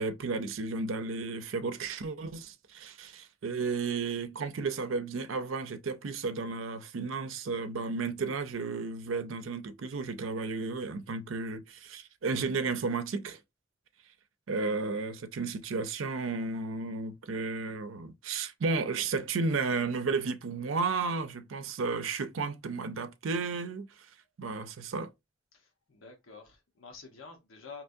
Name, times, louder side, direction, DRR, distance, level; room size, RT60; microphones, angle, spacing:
voice 1, 0.0-13.4 14.5-24.1 24.4-25.1, right 4 dB, 80° right, 0.5 m, -33 dB
voice 2, 25.5-27.8, left 4 dB, 85° left, 0.9 m, -49 dB
4.5 x 3.0 x 2.5 m
head